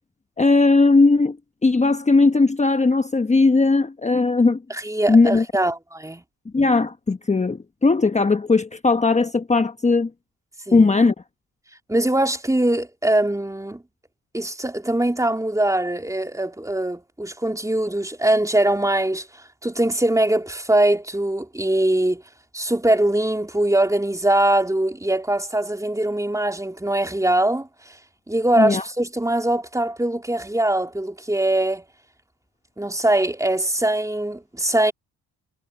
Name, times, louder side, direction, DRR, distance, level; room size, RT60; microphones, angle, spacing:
voice 1, 0.4-1.4 1.6-4.6 5.1-5.4 6.5-10.1 10.7-11.1 28.6-28.8, left 3 dB, 15° left, 1.1 m, -18 dB
voice 2, 4.7-6.2 10.7-10.9 11.9-13.8 14.3-19.3 19.6-22.2 22.5-27.7 28.3-31.8 32.8-34.9, right 1 dB, 10° right, 3.4 m, -22 dB
supercardioid pair, 70°, 40 cm